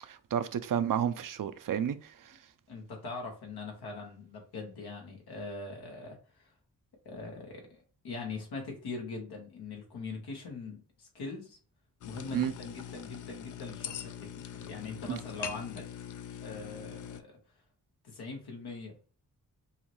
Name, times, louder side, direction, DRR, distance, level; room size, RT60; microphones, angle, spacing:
voice 1, 0.1-2.1 12.3-12.5 15.1-15.2, right 9 dB, 60° right, 0.6 m, -31 dB
voice 2, 2.7-6.5 7.0-11.6 12.0-15.8 16.4-17.4 18.0-18.9, left 3 dB, 85° left, 1.2 m, -42 dB
sound 1, 12.0-17.2, left 9 dB, 55° left, 0.5 m, -42 dB
5.5 x 2.1 x 3.1 m
supercardioid pair, 40°, 38 cm